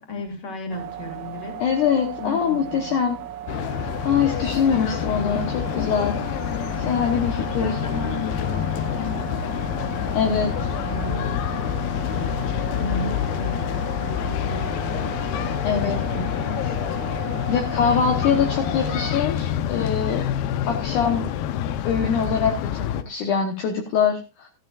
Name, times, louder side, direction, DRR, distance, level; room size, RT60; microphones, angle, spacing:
voice 1, 0.0-1.6 2.2-2.9 7.1-16.8 17.2-17.8 18.1-18.4, left 1 dB, 30° left, 2.9 m, -36 dB
sound 1, 0.7-19.1, right 10 dB, 65° right, 1.9 m, -36 dB
voice 2, 1.6-3.2 4.0-6.2 6.8-7.8 10.1-10.5 15.6-16.0 17.5-20.3 20.7-21.3 21.8-24.5, left 7 dB, 65° left, 2.4 m, -23 dB
sound 2, 3.5-23.0, left 10 dB, 85° left, 2.7 m, -27 dB
14.0 x 12.5 x 2.4 m
omnidirectional pair, 4.2 m